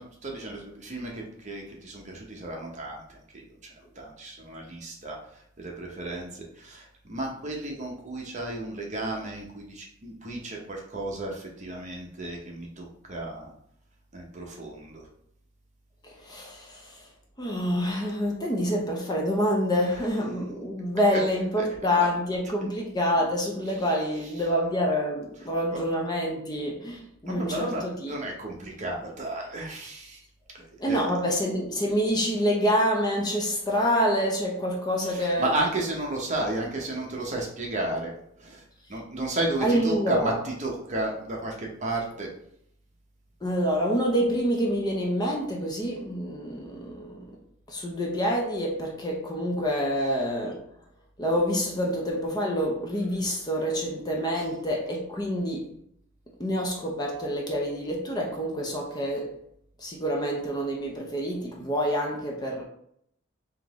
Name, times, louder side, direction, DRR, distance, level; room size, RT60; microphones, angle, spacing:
voice 1, 0.0-3.0 3.3-3.4 4.0-5.2 5.6-13.5 14.1-15.0 20.0-20.2 21.1-21.2 21.6-21.7 22.0-22.1 23.6-24.5 25.3-25.8 27.3-30.2 30.8-31.3 35.0-38.1 38.4-38.6 38.9-42.3 54.3-54.4, right 2 dB, 35° right, 0.8 m, -33 dB
voice 2, 16.0-17.1 17.4-28.1 30.8-35.5 39.6-40.4 43.4-47.3 47.7-50.6 51.2-55.7 56.4-59.3 59.8-62.6, equal, 20° left, 0.6 m, -27 dB
3.8 x 2.9 x 3.6 m
head